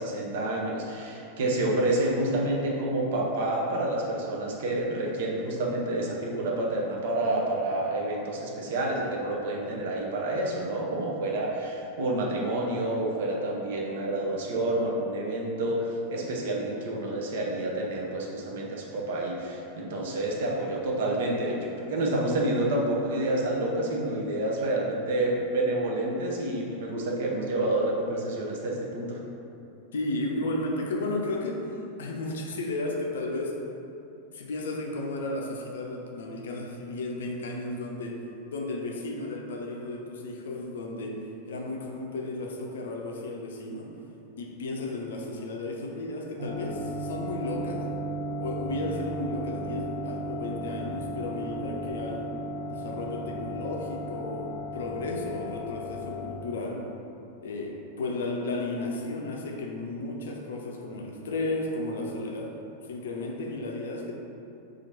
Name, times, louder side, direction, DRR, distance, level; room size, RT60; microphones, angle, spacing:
voice 1, 0.0-29.2, right 1 dB, 55° right, -2 dB, 0.6 m, -28 dB
voice 2, 29.9-31.6 32.0-33.6 34.3-41.2 41.5-43.9 44.4-47.9 48.4-52.3 52.7-56.8 57.4-62.5 62.8-64.2, left 2 dB, 60° left, -1 dB, 0.4 m, -34 dB
sound 1, 46.4-56.3, equal, 40° right, 1.1 m, -35 dB
2.9 x 2.4 x 4.2 m, 2.8 s
figure-of-eight pair, 90°, 0 cm